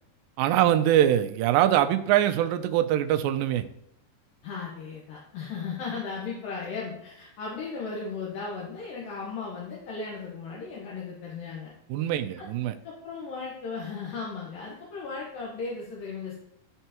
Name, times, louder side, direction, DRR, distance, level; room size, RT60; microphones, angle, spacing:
voice 1, 0.4-3.6 11.9-12.7, right 12 dB, 80° right, 8 dB, 2.2 m, -23 dB
voice 2, 4.4-11.7 12.4-12.5 12.8-16.4, left 4 dB, 70° left, -4 dB, 2.8 m, -36 dB
12.5 x 4.5 x 2.9 m, 0.76 s
omnidirectional pair, 4.2 m